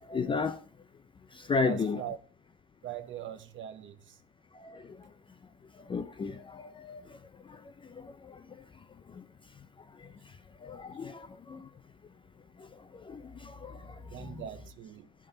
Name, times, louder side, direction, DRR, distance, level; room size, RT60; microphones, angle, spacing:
voice 1, 0.1-0.6 1.5-2.0 4.6-4.8 5.9-7.0 10.6-11.6 13.1-13.8 14.2-14.4, left 4 dB, 15° left, 0.4 m, -33 dB
voice 2, 1.6-2.2 2.8-4.2 14.1-15.1, right 11 dB, 40° right, 0.8 m, -41 dB
17.0 x 5.9 x 3.8 m
cardioid pair, 140°, 30 cm